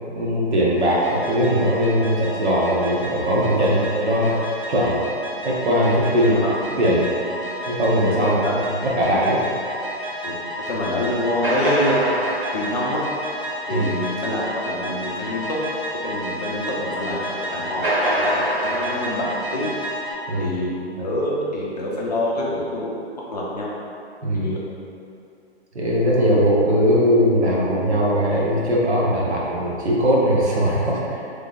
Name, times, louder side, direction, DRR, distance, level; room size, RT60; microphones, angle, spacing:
voice 1, 0.1-4.3 4.7-5.0 5.4-6.3 6.8-7.0 7.7-8.4 8.8-9.4 13.7-13.9 20.3-20.6 21.0-21.1 24.2-24.6 25.7-31.2, equal, 80° right, -5 dB, 1.1 m, -20 dB
sound 1, 0.8-20.1, equal, 50° right, 1.1 m, -29 dB
voice 2, 6.1-6.7 7.4-7.5 8.2-8.7 9.3-9.4 10.2-10.4 10.7-12.1 12.5-13.0 13.7-15.6 16.0-19.7 20.4-23.0 23.3-23.7 24.3-24.6, left 1 dB, 40° left, -4 dB, 0.5 m, -26 dB
3.7 x 3.3 x 2.4 m, 2.5 s
hypercardioid pair, 165°, 33 cm